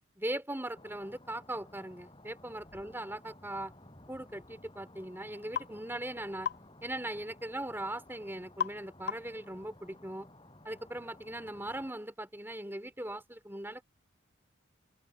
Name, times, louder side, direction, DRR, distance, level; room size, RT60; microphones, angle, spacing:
voice 1, 0.2-3.7 4.1-6.5 6.8-10.3 10.6-13.8, right 1 dB, 10° right, 3.7 m, -39 dB
sound 1, 0.7-11.9, left 1 dB, 25° left, 6.5 m, -56 dB
sound 2, 5.6-5.7 6.4-6.7 8.6-8.8 9.1-9.4, left 8 dB, 50° left, 0.3 m, -34 dB
open air
head